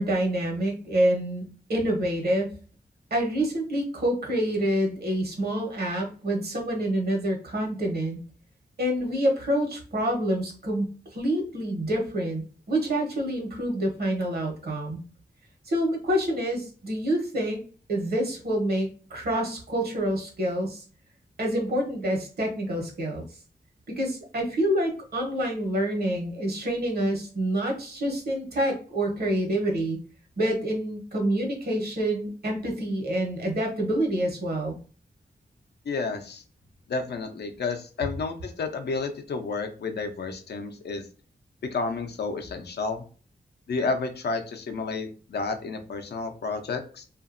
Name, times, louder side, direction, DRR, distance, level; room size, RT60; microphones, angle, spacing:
voice 1, 0.0-1.4 1.7-2.6 3.1-8.2 8.8-15.0 15.7-17.6 17.9-20.8 21.4-23.2 23.9-30.0 30.4-34.8, right 1 dB, 70° right, 0 dB, 1.0 m, -27 dB
voice 2, 35.8-36.4 36.9-41.1 41.7-43.0 43.7-47.0, left 4 dB, 80° left, 5 dB, 0.6 m, -31 dB
2.8 x 2.5 x 2.5 m, 0.38 s
wide cardioid pair, 145°, 17 cm